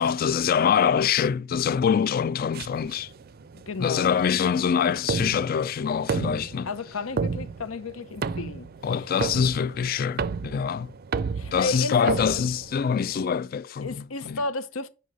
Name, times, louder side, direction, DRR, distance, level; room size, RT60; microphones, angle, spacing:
voice 1, 0.0-3.1 3.8-6.7 8.8-10.9 11.5-14.4, left 7 dB, 45° left, 0.3 m, -24 dB
sound 1, 2.5-13.2, right 5 dB, 50° right, 0.4 m, -33 dB
voice 2, 3.5-4.1 6.7-8.7 11.4-12.4 13.8-14.9, left 3 dB, 90° left, 0.7 m, -32 dB
5.5 x 5.3 x 6.2 m
head